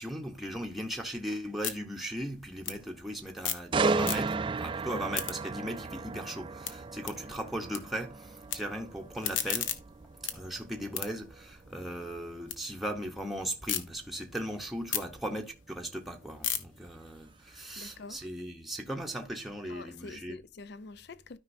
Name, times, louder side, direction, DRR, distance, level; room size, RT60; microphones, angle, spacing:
voice 1, 0.0-9.7 10.3-20.4, equal, ahead, 0.8 m, -38 dB
sound 1, 0.7-3.7 4.0-4.6 4.9-7.8 8.1-8.6 9.0-12.6 13.0-13.8 14.3-18.4, left 9 dB, 75° left, 1.0 m, -38 dB
sound 2, 3.7-17.6 18.0-18.2, right 4 dB, 25° right, 0.4 m, -36 dB
voice 2, 17.8-18.2 19.7-21.4, left 3 dB, 55° left, 0.5 m, -46 dB
13.0 x 5.3 x 2.6 m
head